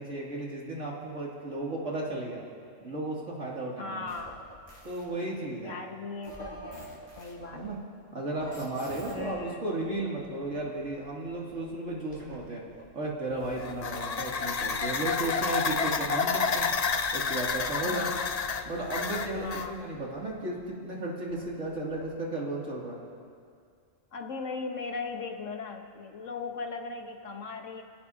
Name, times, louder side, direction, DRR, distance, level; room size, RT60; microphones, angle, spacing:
voice 1, 0.0-2.4 2.8-4.1 4.8-5.8 7.5-7.8 8.1-12.6 12.9-16.7 17.1-18.1 18.7-23.0, right 2 dB, 75° right, -4 dB, 3.1 m, -34 dB
voice 2, 3.8-4.4 5.6-7.9 9.1-9.6 17.8-18.3 19.4-19.8 24.1-27.8, left 4 dB, 75° left, 4 dB, 1.5 m, -38 dB
sound 1, 4.1-5.0 6.2-7.7 8.4-9.4 9.8-12.4 12.7-15.4 15.8-17.8 18.5-20.6 21.3-22.2, right 1 dB, 25° right, 4.6 m, -49 dB
sound 2, 13.4-19.7, left 5 dB, 40° left, 0.6 m, -30 dB
26.5 x 17.0 x 2.8 m, 2.3 s
omnidirectional pair, 1.3 m